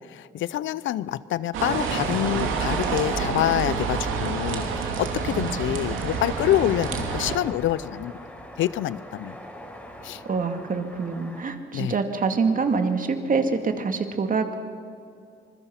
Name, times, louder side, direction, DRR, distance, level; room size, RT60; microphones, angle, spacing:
voice 1, 0.0-8.1 8.6-9.4 10.0-10.2 11.7-12.0, left 13 dB, 75° left, 18 dB, 0.7 m, -26 dB
sound 1, 1.5-7.4, right 5 dB, 90° right, 2.7 m, -28 dB
sound 2, 5.2-11.4, equal, 5° left, 4.9 m, -43 dB
voice 2, 5.4-5.9 10.3-14.5, right 4 dB, 45° right, 6 dB, 2.2 m, -26 dB
26.5 x 21.0 x 5.9 m, 2.5 s
cardioid pair, 90°, 20 cm